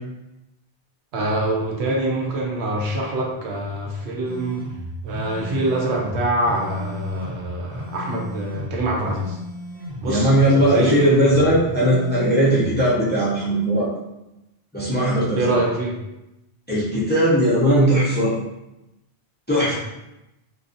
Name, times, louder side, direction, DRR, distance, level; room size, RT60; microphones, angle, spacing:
voice 1, 1.1-4.7 5.0-9.4 10.0-11.3 15.4-16.0 19.7-19.8, right 1 dB, 80° right, -1 dB, 0.9 m, -25 dB
sound 1, 4.3-12.8, left 1 dB, 45° right, 0.7 m, -35 dB
voice 2, 10.1-13.9 14.7-15.4 16.7-18.3 19.5-19.7, right 1 dB, 15° left, -8 dB, 0.4 m, -18 dB
2.6 x 2.3 x 2.5 m, 0.92 s
omnidirectional pair, 1.1 m